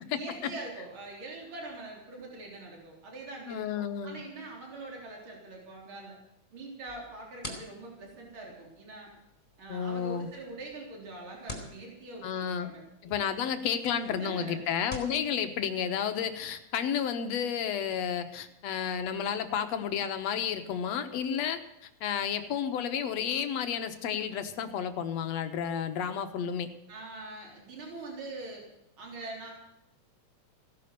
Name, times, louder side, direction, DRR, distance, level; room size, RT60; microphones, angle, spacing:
voice 1, 0.0-6.2 6.5-9.1 9.6-12.8 13.9-14.6 26.9-28.6 29.0-29.5, right 2 dB, 40° right, -1 dB, 4.5 m, -43 dB
voice 2, 3.5-4.2 9.7-10.3 12.2-12.7 13.0-26.7, left 8 dB, 65° left, 8 dB, 2.2 m, -31 dB
sound 1, 6.9-15.2, left 2 dB, 15° left, 4.0 m, -48 dB
16.5 x 11.5 x 6.7 m, 0.87 s
omnidirectional pair, 3.4 m